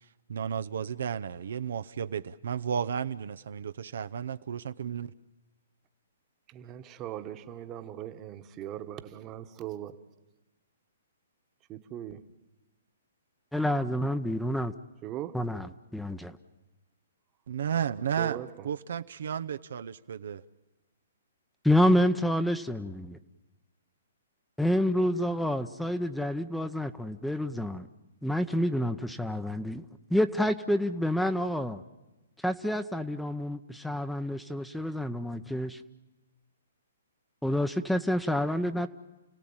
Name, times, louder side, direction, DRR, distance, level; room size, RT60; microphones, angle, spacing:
voice 1, 0.3-5.1 17.5-20.4, right 8 dB, 70° right, 0.7 m, -33 dB
voice 2, 6.5-9.9 11.7-12.3 15.0-15.4 18.2-18.7, right 11 dB, 25° right, 1.4 m, -40 dB
voice 3, 13.5-14.7 15.3-16.4 21.6-23.2 24.6-27.9 28.2-31.8 32.4-35.8 37.4-38.9, left 1 dB, ahead, 0.8 m, -28 dB
30.0 x 17.0 x 8.9 m
hypercardioid pair, 135°, 0 cm